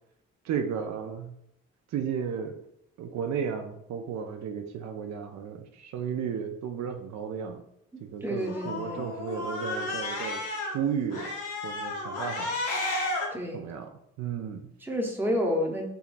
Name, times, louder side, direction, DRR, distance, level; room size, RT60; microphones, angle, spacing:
voice 1, 0.4-1.4 1.9-2.6 3.0-7.6 8.0-10.4 10.7-11.3 11.6-12.6 13.5-13.9 14.2-14.7, right 7 dB, 65° right, 5 dB, 0.5 m, -33 dB
voice 2, 8.2-9.0 13.3-13.6 14.8-15.9, left 1 dB, 5° right, 0 dB, 0.7 m, -29 dB
Cat, 8.4-10.7 11.1-13.3, left 2 dB, 90° left, 1.0 m, -32 dB
3.6 x 2.9 x 2.5 m, 0.76 s
cardioid pair, 90°, 30 cm